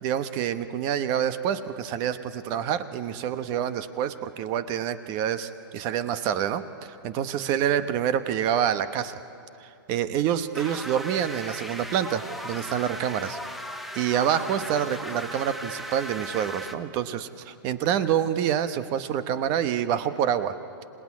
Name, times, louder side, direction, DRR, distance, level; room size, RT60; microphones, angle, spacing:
voice 1, 0.0-9.1 9.6-13.4 13.9-20.6, right 9 dB, 35° right, 12 dB, 1.1 m, -27 dB
sound 1, 10.5-16.7, equal, ahead, 1.0 m, -37 dB
26.0 x 19.0 x 9.7 m, 2.6 s
hypercardioid pair, 145°, 12 cm